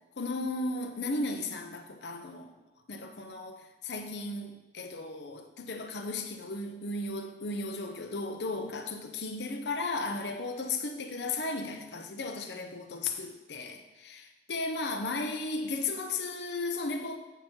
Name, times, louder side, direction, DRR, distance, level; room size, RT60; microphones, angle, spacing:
voice 1, 0.2-2.5 2.9-17.2, left 3 dB, 70° left, 5 dB, 0.8 m, -35 dB
8.0 x 6.0 x 4.5 m, 1.1 s
head